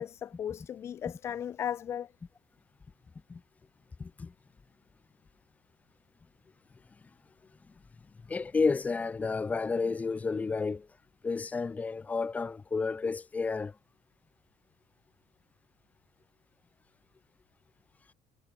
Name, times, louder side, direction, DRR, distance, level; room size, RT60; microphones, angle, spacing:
voice 1, 0.0-2.1, left 9 dB, 35° left, 0.5 m, -36 dB
voice 2, 4.0-4.3 8.3-10.9 11.2-13.8, left 4 dB, 20° left, 2.7 m, -31 dB
cardioid pair, 145°, 8 cm